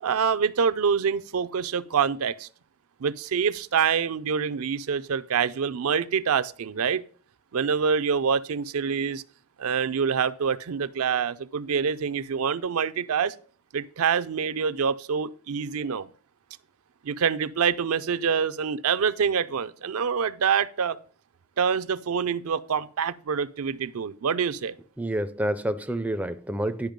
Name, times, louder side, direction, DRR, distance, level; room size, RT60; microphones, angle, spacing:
voice 1, 0.0-2.5 3.0-7.0 7.5-9.2 9.6-13.3 13.7-16.1 17.0-21.0 21.6-24.8, right 6 dB, 75° right, 0.5 m, -26 dB
voice 2, 25.0-26.9, right 1 dB, 5° right, 0.4 m, -28 dB
10.5 x 5.4 x 5.1 m
head